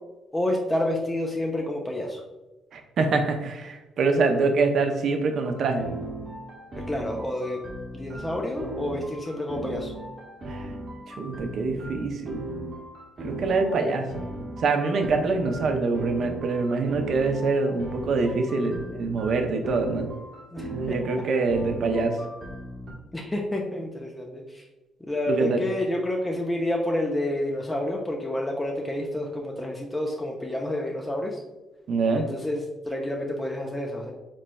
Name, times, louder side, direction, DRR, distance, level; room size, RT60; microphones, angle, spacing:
voice 1, 0.3-2.2 6.9-7.6 7.9-9.9 20.5-21.0 23.1-24.7 25.1-31.4 32.1-34.1, left 1 dB, 15° left, 0 dB, 0.5 m, -29 dB
voice 2, 2.7-5.9 10.5-10.7 11.1-12.4 13.2-14.3 14.6-20.1 20.7-22.2 25.3-25.7 31.9-32.2, right 3 dB, 65° right, 5 dB, 0.5 m, -25 dB
sound 1, 5.4-22.9, right 1 dB, 45° right, 0.9 m, -38 dB
3.9 x 3.1 x 2.2 m, 1.1 s
supercardioid pair, 55°, 0 cm